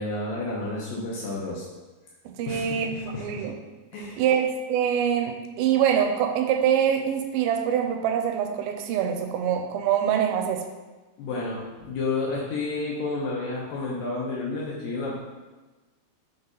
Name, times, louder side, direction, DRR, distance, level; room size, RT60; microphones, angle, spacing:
voice 1, 0.0-1.6 2.5-3.4 3.9-4.3 11.2-15.2, left 3 dB, 75° left, -4 dB, 2.5 m, -31 dB
voice 2, 2.3-3.6 4.2-10.7, right 8 dB, 85° right, 5 dB, 2.5 m, -24 dB
6.0 x 3.9 x 4.0 m, 1.2 s
omnidirectional pair, 4.2 m